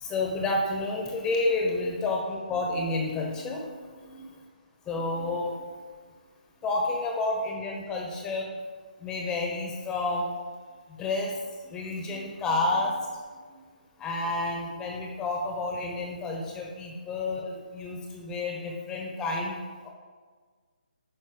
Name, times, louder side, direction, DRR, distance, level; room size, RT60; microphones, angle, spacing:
voice 1, 0.0-4.2 4.9-5.5 6.6-8.4 9.0-10.3 11.0-11.3 11.7-12.9 14.0-17.5 17.7-19.6 19.8-19.9, left 2 dB, 10° left, 0 dB, 1.1 m, -30 dB
9.5 x 5.5 x 5.2 m, 1.5 s
figure-of-eight pair, 150°, 5 cm